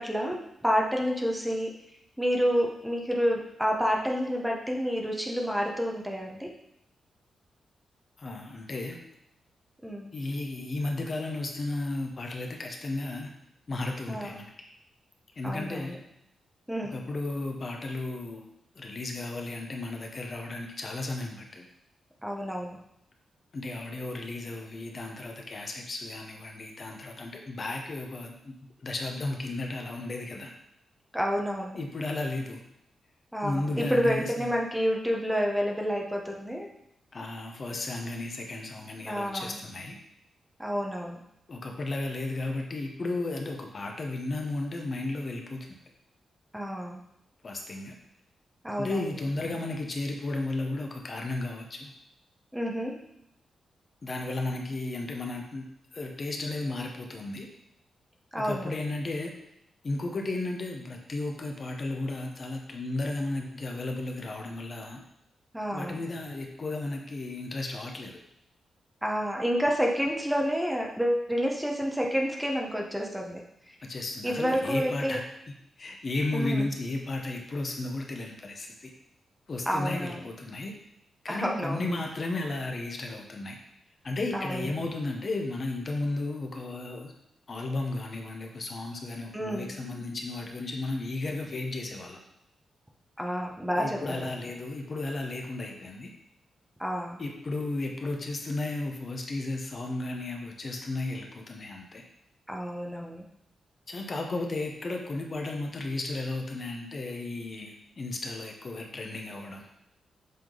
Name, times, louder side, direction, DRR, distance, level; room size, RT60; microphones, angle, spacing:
voice 1, 0.0-1.7 2.2-6.5 9.8-10.1 14.1-14.4 15.4-16.0 16.7-17.0 22.2-22.8 31.1-31.8 33.3-36.7 39.0-39.6 40.6-41.2 46.5-47.0 48.6-49.1 52.5-52.9 58.3-58.7 65.5-65.9 69.0-73.8 74.2-75.2 76.3-76.6 79.7-80.2 81.3-81.9 84.3-84.6 89.3-89.8 93.2-94.2 96.8-97.2 102.5-103.3, equal, 5° right, 0 dB, 0.9 m, -29 dB
voice 2, 8.2-9.0 10.1-13.3 13.7-14.7 15.4-16.0 16.8-21.7 23.5-30.5 31.7-32.6 33.4-34.5 37.1-40.0 41.5-45.7 47.4-47.9 48.8-51.9 54.0-55.6 55.9-57.5 58.4-59.3 59.8-65.0 65.7-68.2 73.8-75.2 75.8-78.9 79.5-80.7 81.2-83.6 84.0-87.1 87.5-92.2 93.8-96.1 97.2-102.0 103.9-109.7, left 2 dB, 40° left, 2 dB, 0.9 m, -34 dB
7.6 x 3.6 x 3.8 m, 0.78 s
cardioid pair, 105°, 0 cm